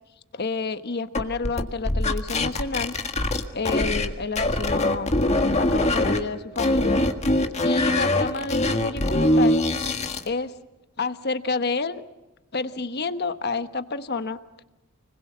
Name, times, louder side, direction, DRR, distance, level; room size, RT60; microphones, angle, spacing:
voice 1, 0.3-3.0 3.2-5.1 5.6-7.0 7.6-9.6 10.2-10.5 11.0-12.0 12.5-14.4, left 4 dB, 50° left, 11 dB, 1.2 m, -29 dB
sound 1, 1.1-4.1 4.4-6.2 6.6-10.3, left 1 dB, 30° left, 1.7 m, -22 dB
30.0 x 21.0 x 7.4 m, 1.0 s
head